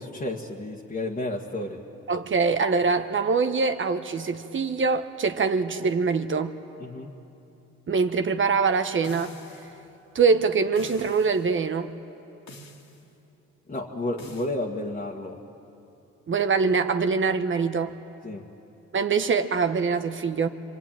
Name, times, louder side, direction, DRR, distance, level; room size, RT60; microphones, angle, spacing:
voice 1, 0.0-1.8 6.8-7.1 13.7-15.4 18.2-18.4, left 1 dB, 25° left, -2 dB, 1.9 m, -31 dB
voice 2, 2.1-6.6 7.9-9.3 10.1-11.9 16.3-18.0 18.9-20.5, right 5 dB, 40° right, 8 dB, 1.2 m, -24 dB
sound 1, 9.0-9.8 10.7-11.5 12.5-13.0 14.2-14.5, left 1 dB, 65° left, 2.6 m, -46 dB
26.0 x 23.5 x 9.1 m, 2.9 s
cardioid pair, 90°, 30 cm